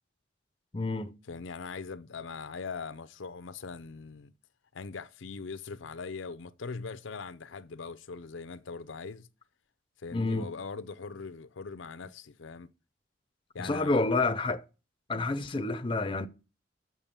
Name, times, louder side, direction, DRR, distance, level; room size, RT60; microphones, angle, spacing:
voice 1, 0.7-1.2 10.1-10.5 13.6-14.6 15.1-16.3, left 3 dB, 25° left, 0.5 m, -29 dB
voice 2, 1.3-4.3 4.7-9.3 10.0-12.7 13.5-14.0, left 4 dB, 80° left, 0.6 m, -41 dB
6.8 x 6.4 x 7.3 m
head